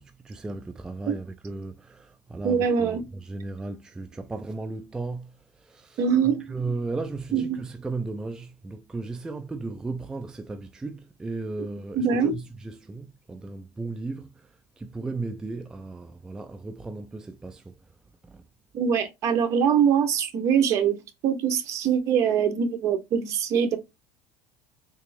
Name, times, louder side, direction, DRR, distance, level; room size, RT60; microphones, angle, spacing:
voice 1, 0.0-14.5 14.8-17.7 18.2-18.4, right 3 dB, 10° right, 0.3 m, -35 dB
voice 2, 2.4-3.0 6.0-6.5 7.3-7.6 11.9-12.3 18.7-21.0 21.2-23.8, right 7 dB, 45° right, 0.8 m, -23 dB
3.4 x 2.9 x 3.1 m
cardioid pair, 140°, 7 cm